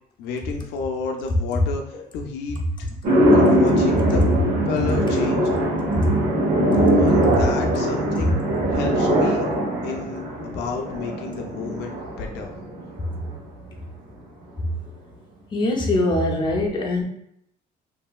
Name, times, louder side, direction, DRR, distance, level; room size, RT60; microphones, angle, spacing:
voice 1, 0.2-2.9 3.3-4.2 4.6-5.4 6.9-8.3 8.7-9.5 9.8-11.9 12.2-12.5, left 5 dB, 80° left, 2 dB, 0.4 m, -31 dB
sound 1, 3.0-13.4, right 1 dB, 65° right, 1.1 m, -21 dB
voice 2, 15.5-17.0, left 1 dB, 25° left, -1 dB, 0.6 m, -22 dB
2.9 x 2.6 x 2.3 m, 0.72 s
cardioid pair, 110°, 17 cm